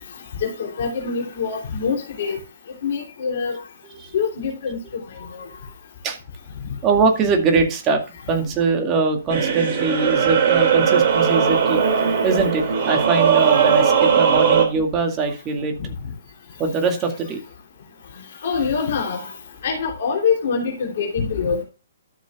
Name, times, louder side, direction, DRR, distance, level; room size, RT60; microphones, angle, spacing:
voice 1, 0.4-2.4 2.8-3.5 4.1-4.8 18.4-19.2 19.6-21.6, left 5 dB, 50° left, 0 dB, 3.2 m, -24 dB
voice 2, 3.8-4.1 6.0-6.2 6.8-8.0 8.3-11.8 12.2-15.9 16.6-17.4, right 4 dB, 25° right, 4 dB, 2.1 m, -22 dB
sound 1, 9.3-14.7, right 7 dB, 40° right, 2.6 m, -18 dB
12.5 x 7.3 x 2.4 m, 0.30 s
figure-of-eight pair, 125°, 0 cm